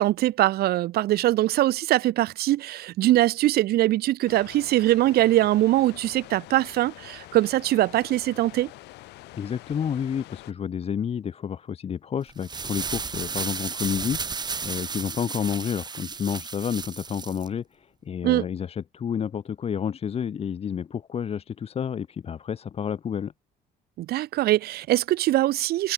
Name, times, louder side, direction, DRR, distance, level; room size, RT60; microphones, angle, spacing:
voice 1, 0.0-8.7 18.2-18.5 24.0-25.9, right 15 dB, 70° right, 0.7 m, -22 dB
sound 1, 4.3-10.5, left 19 dB, 85° left, 2.7 m, -46 dB
voice 2, 9.4-23.3, left 8 dB, 35° left, 0.8 m, -30 dB
sound 2, 12.3-17.5, right 5 dB, 25° right, 1.1 m, -33 dB
cardioid pair, 110°, 17 cm